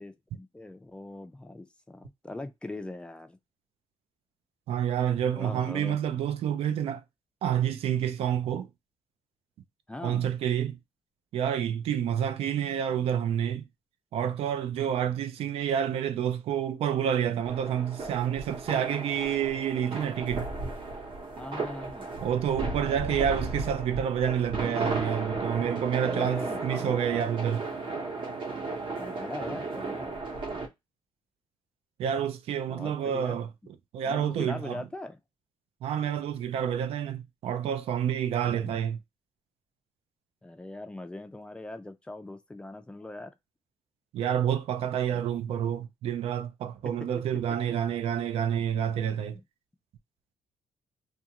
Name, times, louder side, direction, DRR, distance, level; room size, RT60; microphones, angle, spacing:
voice 1, 0.0-3.4 5.3-6.0 9.9-10.3 21.4-22.1 26.0-27.3 29.0-30.2 32.7-33.4 34.0-35.2 38.3-38.7 40.4-43.4 45.1-45.2 47.0-47.4 49.3-49.4, left 2 dB, 10° left, 0.3 m, -41 dB
voice 2, 4.7-7.0 7.4-8.7 10.0-10.8 11.3-13.7 14.1-20.5 22.2-27.6 32.0-33.5 33.9-34.8 35.8-39.0 44.1-49.4, right 9 dB, 75° right, 0.4 m, -28 dB
sound 1, 17.5-30.7, right 3 dB, 55° right, 0.9 m, -35 dB
2.5 x 2.3 x 2.8 m
cardioid pair, 135°, 10 cm